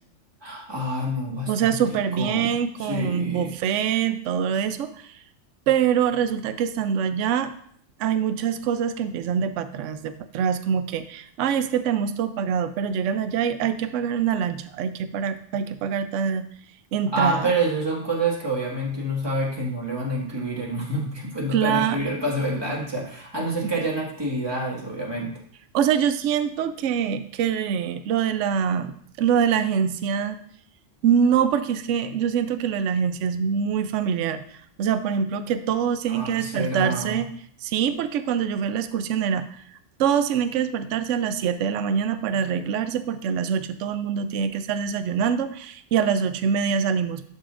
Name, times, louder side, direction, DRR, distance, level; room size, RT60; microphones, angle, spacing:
voice 1, 0.4-2.5 2.8-3.5 17.1-25.3 36.1-37.2, right 1 dB, 20° right, -3 dB, 1.8 m, -27 dB
voice 2, 1.5-5.1 5.7-7.5 8.0-16.4 16.9-17.5 21.5-22.0 23.6-23.7 25.7-30.4 31.0-34.4 34.8-37.3 37.6-39.5 40.0-47.3, right 8 dB, 70° right, 11 dB, 0.9 m, -24 dB
11.5 x 5.7 x 2.5 m, 0.62 s
omnidirectional pair, 1.4 m